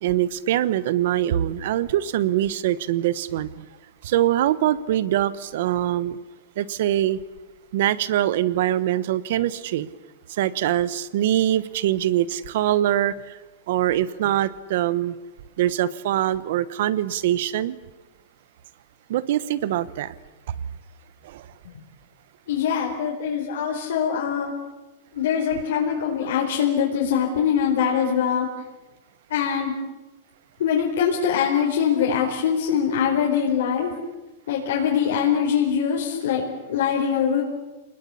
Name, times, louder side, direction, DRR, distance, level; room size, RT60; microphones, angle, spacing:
voice 1, 0.0-3.6 4.0-6.2 6.6-7.2 7.7-9.9 10.3-13.4 13.7-15.1 15.6-17.8 19.1-20.1 20.5-20.6 21.2-21.5, right 12 dB, 50° right, 18 dB, 1.1 m, -23 dB
voice 2, 22.5-24.5 25.1-28.5 29.3-29.7 30.6-33.9 34.5-37.4, left 8 dB, 70° left, -2 dB, 4.7 m, -23 dB
28.0 x 20.5 x 8.5 m, 1.1 s
supercardioid pair, 175°, 0 cm